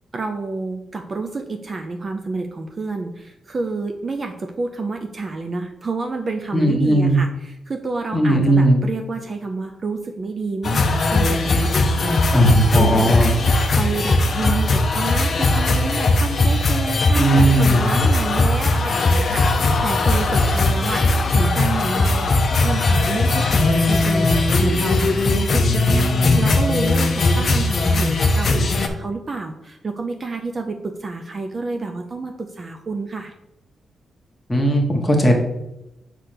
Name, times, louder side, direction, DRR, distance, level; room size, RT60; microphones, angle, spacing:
voice 1, 0.1-12.2 12.7-13.3 13.8-22.4 22.6-33.3, right 3 dB, 30° right, 4 dB, 0.5 m, -29 dB
voice 2, 6.5-7.2 8.1-8.8 12.3-13.3 17.1-17.8 25.5-26.5 34.5-35.4, right 1 dB, 10° left, 0 dB, 1.2 m, -17 dB
sound 1, 10.6-28.9, left 2 dB, 45° left, 0.7 m, -19 dB
6.5 x 3.3 x 5.9 m, 0.90 s
wide cardioid pair, 145°, 0 cm